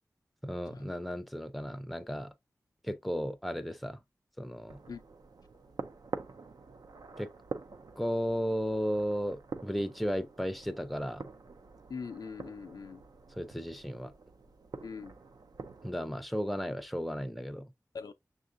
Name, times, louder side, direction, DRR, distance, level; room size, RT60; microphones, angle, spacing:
voice 1, 0.4-2.3 2.8-4.0 4.4-4.8 7.2-7.3 8.0-11.3 13.3-14.1 15.8-17.7, equal, ahead, 0.4 m, -34 dB
sound 1, 4.7-15.9, right 4 dB, 80° right, 0.4 m, -46 dB
voice 2, 11.9-13.0 14.8-15.1 17.9-18.1, left 5 dB, 80° left, 0.4 m, -42 dB
6.3 x 2.5 x 2.5 m
wide cardioid pair, 60°, 7 cm